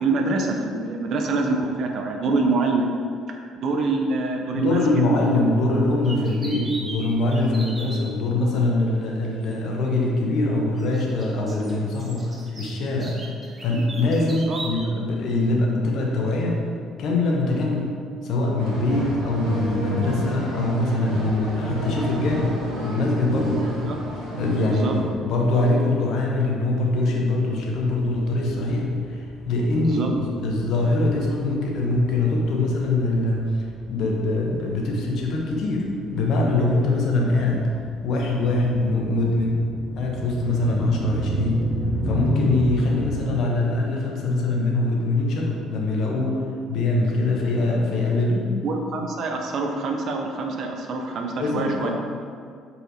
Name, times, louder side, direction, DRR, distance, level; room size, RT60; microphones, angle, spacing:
voice 1, 0.0-3.0 3.3-5.0 14.2-14.6 23.8-24.0 24.7-25.0 29.8-30.1 48.6-51.9, right 3 dB, 55° right, 3 dB, 0.4 m, -25 dB
voice 2, 4.5-13.2 13.6-16.6 17.0-17.9 18.2-22.6 22.8-23.7 24.4-37.7 38.0-39.6 39.9-41.7 42.1-48.5 51.4-51.9, left 2 dB, 55° left, -1 dB, 0.7 m, -23 dB
sound 1, 6.0-8.0 9.5-9.6 10.8-14.9, right 2 dB, 30° right, 1.0 m, -38 dB
sound 2, 18.6-25.0, equal, 80° right, 0.9 m, -30 dB
sound 3, 27.7-43.4, right 1 dB, 25° left, 0.8 m, -34 dB
4.0 x 2.6 x 4.1 m, 2.2 s
figure-of-eight pair, 50°, 0 cm